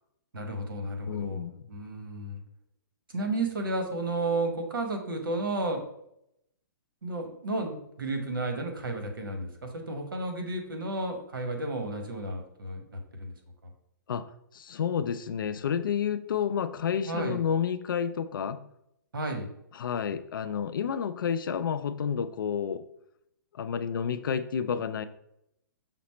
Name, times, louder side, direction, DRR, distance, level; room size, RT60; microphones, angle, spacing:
voice 1, 0.3-2.4 3.1-5.8 7.0-13.3 17.1-17.4 19.1-19.5, right 2 dB, 90° right, 4 dB, 1.0 m, -32 dB
voice 2, 1.1-1.7 14.1-14.3 14.5-18.6 19.7-22.8 23.5-25.1, left 7 dB, 80° left, 12 dB, 0.4 m, -30 dB
5.8 x 2.0 x 4.3 m, 0.77 s
hypercardioid pair, 140°, 11 cm